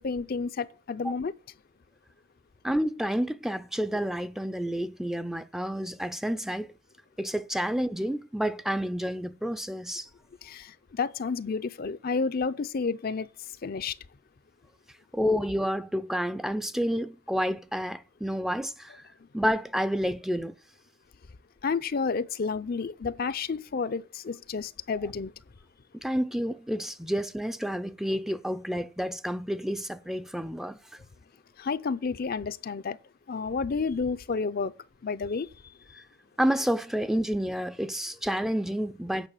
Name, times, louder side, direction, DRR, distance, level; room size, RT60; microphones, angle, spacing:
voice 1, 0.0-1.3 10.4-13.3 13.6-14.0 21.6-25.3 31.6-33.0 33.3-34.7 35.0-35.5, left 4 dB, 50° left, 0.5 m, -30 dB
voice 2, 2.6-6.7 7.2-10.1 15.1-19.0 19.3-20.5 26.0-31.0 36.4-39.3, equal, ahead, 0.5 m, -29 dB
9.0 x 5.5 x 7.1 m
head